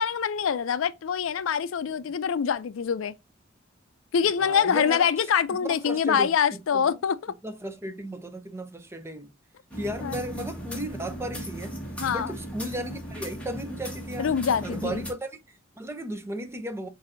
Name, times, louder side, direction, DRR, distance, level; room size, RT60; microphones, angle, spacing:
voice 1, 0.0-3.1 4.1-7.3 10.0-10.2 12.0-12.3 14.2-15.0, left 7 dB, 75° left, 0.4 m, -25 dB
voice 2, 4.4-5.1 5.5-6.3 6.7-7.0 7.4-9.3 9.7-11.8 12.1-14.3 14.6-16.9, right 1 dB, 15° right, 0.6 m, -35 dB
sound 1, 9.7-15.1, equal, 5° left, 1.3 m, -37 dB
7.2 x 2.7 x 2.5 m
head